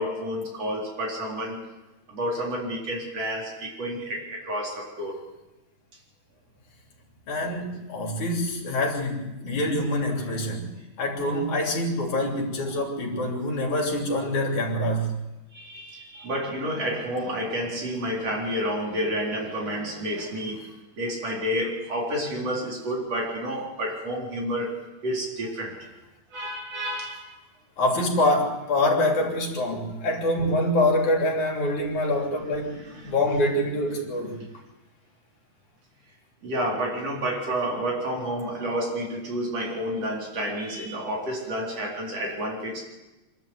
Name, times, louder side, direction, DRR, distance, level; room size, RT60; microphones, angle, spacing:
voice 1, 0.0-1.7 2.1-5.2 15.5-25.9 26.3-27.4 32.8-33.2 36.4-42.8, equal, 60° right, 5.3 m, -30 dB
voice 2, 7.3-15.2 27.8-34.4, left 1 dB, 85° left, 4.8 m, -25 dB
26.5 x 12.5 x 8.1 m
omnidirectional pair, 3.3 m